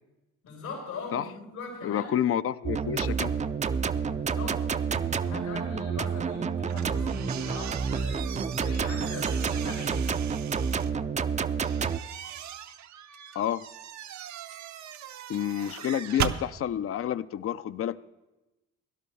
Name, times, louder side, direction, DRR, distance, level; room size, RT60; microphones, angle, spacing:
voice 1, 0.4-2.1 4.2-4.6 5.2-10.1, left 3 dB, 90° left, -2 dB, 4.9 m, -40 dB
voice 2, 1.8-3.3 13.3-13.6 15.3-18.0, left 10 dB, 50° left, 15 dB, 0.4 m, -29 dB
sound 1, 2.6-12.0, right 6 dB, 25° right, 0.4 m, -29 dB
sound 2, 6.7-10.9 11.6-16.4, right 10 dB, 70° right, 0.7 m, -38 dB
17.5 x 11.5 x 3.2 m, 1.0 s
cardioid pair, 90°, 30 cm